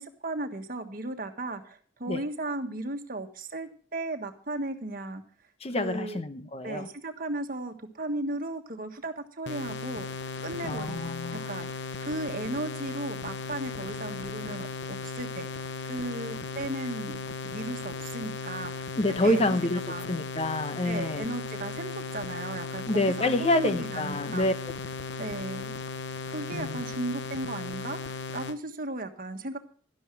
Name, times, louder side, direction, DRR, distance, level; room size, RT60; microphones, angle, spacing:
voice 1, 0.0-5.2 5.8-6.2 6.6-17.2 17.4-18.9 19.2-19.6 19.9-20.1 20.8-24.5 25.2-25.7 26.3-29.6, right 2 dB, 45° right, 1.4 m, -36 dB
voice 2, 5.6-6.9 10.6-11.5 19.0-19.8 20.1-21.3 22.9-24.5 26.5-26.8, left 1 dB, 30° left, 0.8 m, -27 dB
sound 1, 9.5-28.6, left 4 dB, 65° left, 0.8 m, -37 dB
12.0 x 12.0 x 4.6 m
head